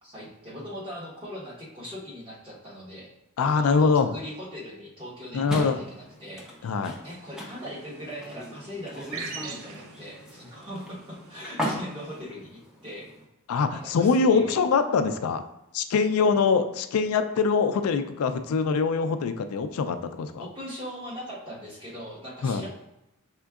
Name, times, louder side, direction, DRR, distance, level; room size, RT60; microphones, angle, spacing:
voice 1, 0.0-3.1 3.4-6.7 7.0-13.1 13.7-14.6 20.4-22.7, equal, 25° right, -6 dB, 1.2 m, -40 dB
voice 2, 3.4-4.1 5.3-5.8 6.6-7.0 13.5-15.4 15.7-20.4 22.4-22.6, left 5 dB, 75° left, 8 dB, 0.4 m, -23 dB
sound 1, 5.5-13.2, equal, 5° right, 0.6 m, -38 dB
sound 2, 7.0-12.2, right 4 dB, 65° right, 0.5 m, -44 dB
5.0 x 3.7 x 2.3 m, 0.87 s
head